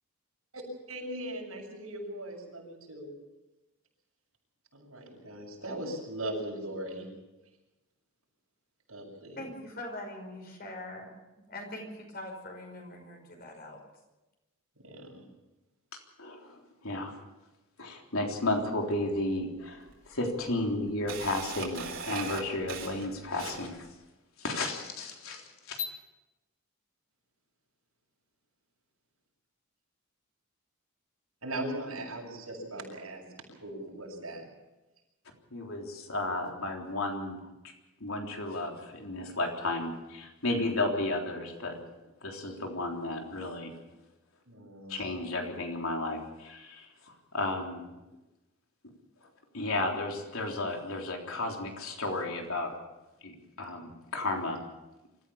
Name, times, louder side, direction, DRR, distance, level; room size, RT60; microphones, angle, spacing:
voice 1, 0.9-3.1 4.7-7.1 8.9-9.5 14.8-15.3 31.4-33.2 33.6-34.5 44.5-45.0, right 1 dB, 80° right, 0 dB, 7.0 m, -39 dB
voice 2, 9.4-11.2 11.5-13.8, left 1 dB, 45° left, 3 dB, 5.5 m, -42 dB
voice 3, 16.2-17.1 17.8-23.8 24.4-25.9 35.5-37.4 38.0-41.8 42.2-43.7 44.9-47.9 49.5-52.7 53.2-53.3 53.6-54.6, left 2 dB, 75° left, 1 dB, 3.6 m, -33 dB
Camera, 18.9-19.0 19.9-20.0 20.4-23.9, right 5 dB, 60° right, 4.2 m, -39 dB
25.5 x 14.5 x 7.1 m, 1.0 s
head